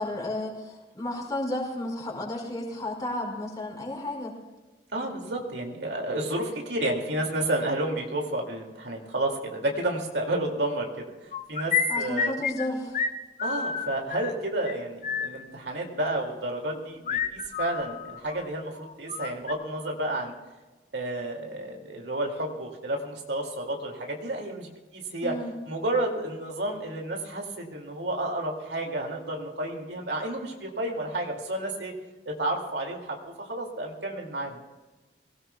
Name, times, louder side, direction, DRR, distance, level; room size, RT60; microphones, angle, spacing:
voice 1, 0.0-4.3 11.9-13.0 25.2-25.5, left 1 dB, 20° left, -2 dB, 4.7 m, -32 dB
voice 2, 4.9-12.4 13.4-20.3 20.9-25.4 25.7-31.9 32.3-34.6, right 1 dB, 75° right, 1 dB, 2.4 m, -31 dB
sound 1, 11.3-12.7 12.9-13.1 13.4-14.3 14.7-14.8 15.0-15.3 17.1-18.5 18.7-19.5, left 6 dB, 45° left, 0.7 m, -29 dB
23.5 x 17.5 x 2.3 m, 1.2 s
head